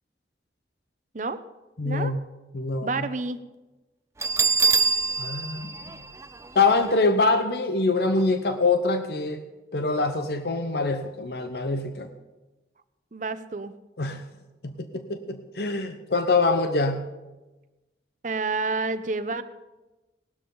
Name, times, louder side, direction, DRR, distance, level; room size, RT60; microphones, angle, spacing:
voice 1, 1.8-2.2 2.5-3.1 5.2-5.9 6.5-9.4 9.7-12.1 14.0-14.2 14.6-17.0, left 3 dB, 65° left, 7 dB, 0.9 m, -24 dB
voice 2, 2.8-3.4 13.1-13.7 18.2-19.4, right 3 dB, 45° right, 12 dB, 0.7 m, -29 dB
Bell, 4.2-6.9, right 4 dB, 15° right, 0.4 m, -25 dB
18.5 x 12.5 x 3.9 m, 1.1 s
head